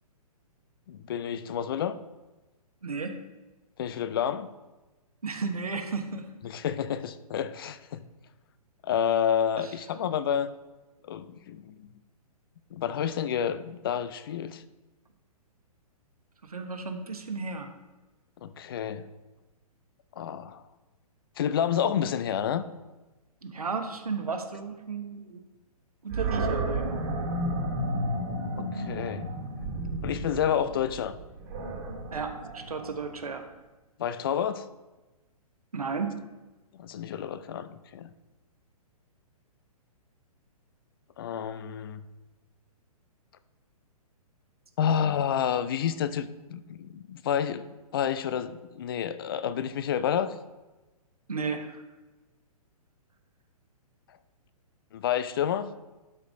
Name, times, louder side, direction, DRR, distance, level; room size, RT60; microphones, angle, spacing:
voice 1, 0.9-2.0 3.8-4.5 6.4-8.0 8.8-10.5 11.0-11.9 12.7-14.6 18.4-19.1 20.2-20.6 21.4-22.7 28.6-29.3 30.0-31.2 34.0-34.7 36.7-38.1 41.2-42.0 44.8-47.7 47.9-50.3 54.9-55.7, left 8 dB, 35° left, 13 dB, 0.4 m, -29 dB
voice 2, 2.8-3.2 5.2-6.3 9.6-9.7 16.4-17.7 23.4-25.4 26.0-27.0 32.1-33.4 35.7-36.2 51.3-51.8, right 4 dB, 70° right, 6 dB, 1.2 m, -34 dB
Animal, 26.1-33.2, right 1 dB, 35° right, 1.7 m, -32 dB
12.0 x 4.9 x 3.6 m, 1.1 s
figure-of-eight pair, 120°, 20 cm